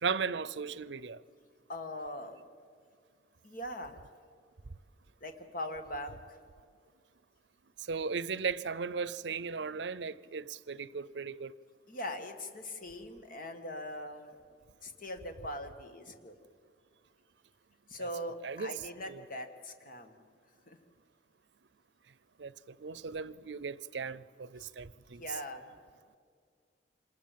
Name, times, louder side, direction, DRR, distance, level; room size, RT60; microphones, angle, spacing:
voice 1, 0.0-1.2 7.9-11.5 18.0-18.1 18.4-18.8 19.1-19.2 22.4-22.5 22.8-25.2, right 5 dB, 85° right, 0.6 m, -36 dB
voice 2, 1.7-2.4 3.4-4.0 5.2-6.4 11.9-14.4 14.8-16.4 17.9-20.2 20.7-20.8 24.6-24.7 25.2-25.8, left 1 dB, 55° left, 2.0 m, -41 dB
26.0 x 21.0 x 7.6 m
head